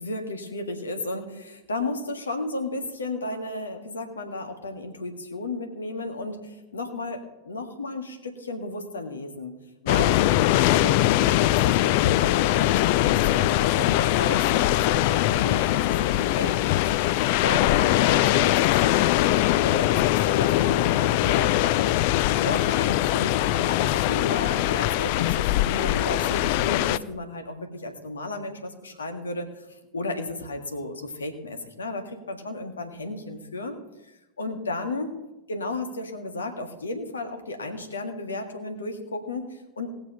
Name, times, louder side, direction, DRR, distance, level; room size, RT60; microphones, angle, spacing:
voice 1, 0.0-9.5 9.8-10.2 10.5-16.8 17.4-21.9 22.3-33.8 34.0-34.1 34.4-35.1 35.5-39.9, left 2 dB, 70° left, 5 dB, 1.6 m, -34 dB
sound 1, 9.9-27.0, left 15 dB, 45° left, 0.4 m, -22 dB
19.0 x 6.9 x 5.6 m, 1.0 s
figure-of-eight pair, 90°, 0 cm